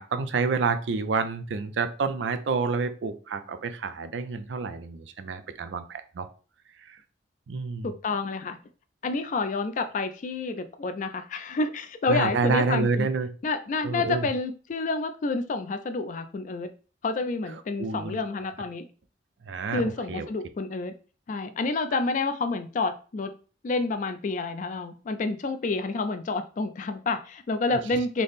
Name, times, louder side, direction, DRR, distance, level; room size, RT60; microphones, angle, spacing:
voice 1, 0.0-6.3 6.9-7.0 7.5-7.9 12.1-13.3 13.8-14.3 17.8-18.2 19.4-20.3, right 4 dB, 80° right, 10 dB, 0.4 m, -28 dB
voice 2, 7.8-8.6 9.0-13.1 13.4-16.7 17.0-18.8 19.7-20.9 21.3-23.3 23.6-28.2, left 3 dB, 45° left, 9 dB, 0.3 m, -29 dB
3.4 x 2.0 x 4.0 m, 0.37 s
head